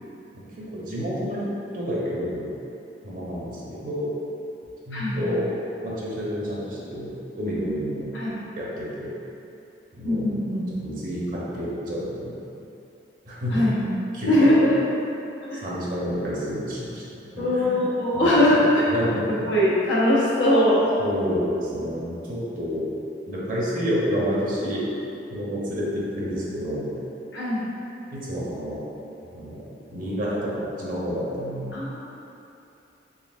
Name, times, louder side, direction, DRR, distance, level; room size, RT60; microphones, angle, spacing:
voice 1, 0.6-1.4 1.7-2.5 3.0-4.1 4.9-5.4 5.8-8.0 8.6-9.1 9.9-10.3 10.7-12.3 13.3-13.6 14.1-14.6 15.6-17.7 18.1-18.5 18.9-19.5 21.0-22.8 23.3-24.8 25.3-27.0 28.1-28.8 29.3-29.6 29.9-31.8, equal, 50° right, -6 dB, 0.8 m, -29 dB
voice 2, 4.9-5.3 8.1-8.3 10.0-10.6 13.5-13.9 14.3-14.7 15.5-15.6 17.4-18.9 19.3-20.9 27.3-27.7 31.7-32.0, left 1 dB, 85° left, -8 dB, 1.0 m, -21 dB
3.9 x 3.3 x 2.5 m, 2.8 s
head